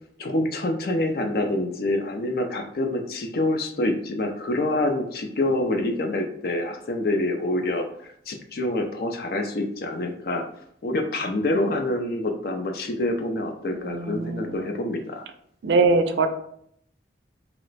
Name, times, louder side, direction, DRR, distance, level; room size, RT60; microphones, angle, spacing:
voice 1, 0.2-7.9 8.3-10.4 10.8-15.2, left 1 dB, 55° left, 5 dB, 0.4 m, -26 dB
voice 2, 13.7-14.7 15.6-16.3, right 3 dB, 70° right, 7 dB, 0.4 m, -22 dB
2.9 x 2.1 x 3.9 m, 0.68 s
head